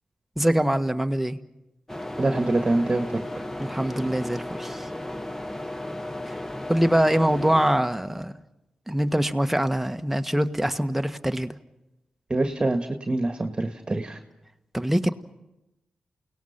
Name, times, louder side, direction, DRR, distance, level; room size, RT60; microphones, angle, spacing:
voice 1, 0.4-1.4 3.6-4.9 6.2-6.3 6.7-8.3 8.9-11.5 14.7-15.1, right 1 dB, 5° right, 7 dB, 1.5 m, -24 dB
Apartment small quiet bathroom with fan, 1.9-7.7, left 1 dB, 15° left, 1.2 m, -34 dB
voice 2, 2.2-3.2 12.3-14.2, right 2 dB, 35° right, 5 dB, 1.7 m, -25 dB
29.0 x 18.5 x 5.9 m, 0.93 s
supercardioid pair, 40°, 3 cm